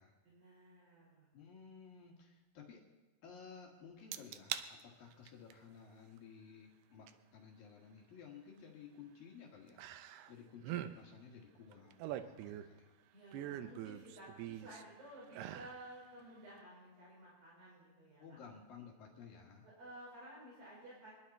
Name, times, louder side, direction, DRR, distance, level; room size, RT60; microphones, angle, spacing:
voice 1, 0.2-1.3 13.1-18.2 19.6-21.1, right 1 dB, 65° right, -7 dB, 6.4 m, -54 dB
voice 2, 1.3-2.8 3.2-12.9 18.2-19.7, left 6 dB, 65° left, 0 dB, 3.3 m, -55 dB
sound 1, 4.1-4.7 5.1-5.5 7.1-7.2 9.8-10.3 10.6-10.9 11.7-12.8 13.3-14.8 15.3-15.8 16.2-16.3, right 12 dB, 90° right, 2.7 m, -43 dB
24.5 x 11.5 x 4.2 m, 1.2 s
omnidirectional pair, 4.5 m